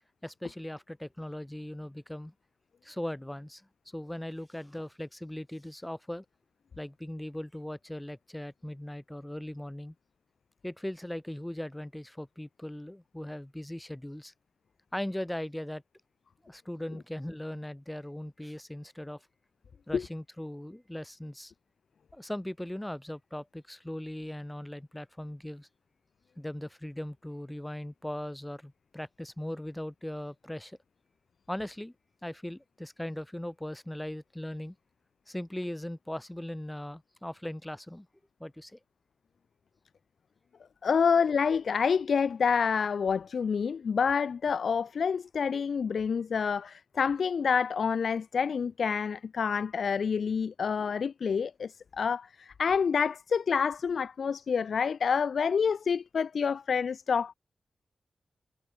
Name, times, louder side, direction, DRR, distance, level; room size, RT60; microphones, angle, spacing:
voice 1, 0.2-2.3 2.8-3.6 3.9-6.2 6.8-9.9 10.6-14.3 14.9-15.8 16.4-19.2 19.9-21.5 22.1-25.7 26.4-30.8 31.5-31.9 32.2-34.7 35.3-38.1 38.4-38.8, left 1 dB, 10° left, 1.6 m, -39 dB
voice 2, 40.8-57.3, left 6 dB, 75° left, 1.4 m, -28 dB
wide cardioid pair, 135°, 0 cm